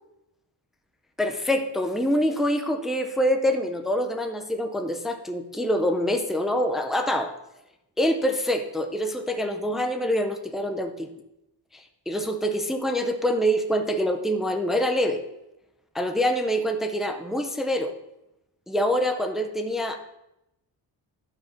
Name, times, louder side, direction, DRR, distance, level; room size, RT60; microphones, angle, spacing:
voice 1, 1.2-7.3 8.0-11.1 11.7-15.2 15.9-17.9 18.7-20.0, equal, ahead, 5 dB, 0.5 m, -25 dB
12.0 x 4.8 x 4.4 m, 0.88 s
wide cardioid pair, 170°, 41 cm